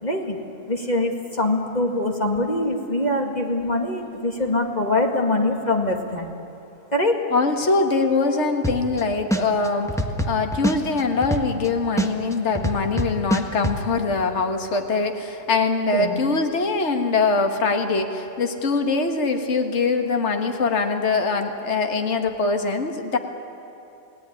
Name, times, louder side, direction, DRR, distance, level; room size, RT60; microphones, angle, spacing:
voice 1, 0.0-0.4 0.7-6.3 6.9-7.3 15.9-16.2, left 2 dB, 25° left, 2 dB, 2.1 m, -23 dB
voice 2, 7.3-9.9 10.3-23.2, left 3 dB, 45° left, 5 dB, 2.0 m, -23 dB
sound 1, 8.6-9.0 9.3-11.7 12.0-13.8, right 1 dB, ahead, 1.3 m, -24 dB
29.5 x 18.0 x 10.0 m, 2.8 s
omnidirectional pair, 1.7 m